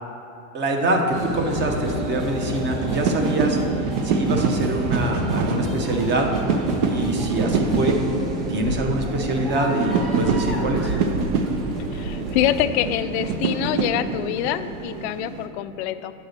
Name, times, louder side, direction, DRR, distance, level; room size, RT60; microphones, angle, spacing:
voice 1, 0.5-3.6 4.0-6.3 6.8-8.0 8.5-10.9, right 1 dB, 25° right, 3 dB, 0.8 m, -24 dB
sound 1, 1.1-12.7, left 1 dB, ahead, 0.4 m, -34 dB
sound 2, 1.1-15.5, right 4 dB, 60° right, 0.8 m, -26 dB
voice 2, 11.9-16.1, left 12 dB, 55° left, 12 dB, 0.4 m, -25 dB
8.7 x 4.1 x 6.4 m, 2.9 s
supercardioid pair, 145°, 40 cm